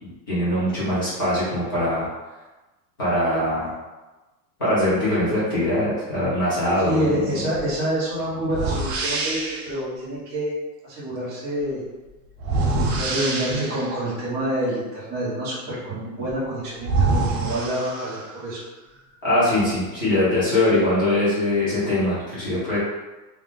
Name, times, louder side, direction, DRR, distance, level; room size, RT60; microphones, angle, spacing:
voice 1, 0.0-2.1 3.0-3.7 4.6-7.1 19.2-22.8, left 1 dB, 15° left, -11 dB, 0.3 m, -22 dB
voice 2, 6.8-9.4 9.6-10.5 10.8-11.8 12.9-18.6, right 1 dB, 20° right, -12 dB, 1.2 m, -27 dB
sound 1, 7.5-7.7 8.5-9.7 12.4-14.0 16.3-16.4 16.8-18.4, right 3 dB, 40° right, 0.5 m, -25 dB
3.5 x 2.4 x 3.7 m, 1.1 s
supercardioid pair, 175°, 49 cm